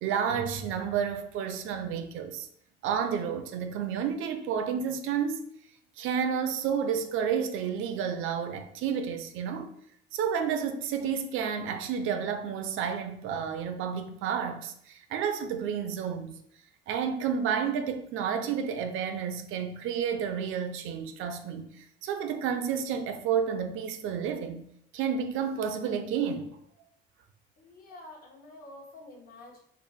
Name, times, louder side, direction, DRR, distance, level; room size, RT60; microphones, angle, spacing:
voice 1, 0.0-2.5 2.8-5.5 6.0-9.7 10.1-16.4 16.9-24.7 24.9-26.6, right 7 dB, 80° right, 0.5 m, -31 dB
voice 2, 27.6-29.6, left 2 dB, 45° left, 0.9 m, -48 dB
4.4 x 2.0 x 3.5 m
cardioid pair, 165°, 20 cm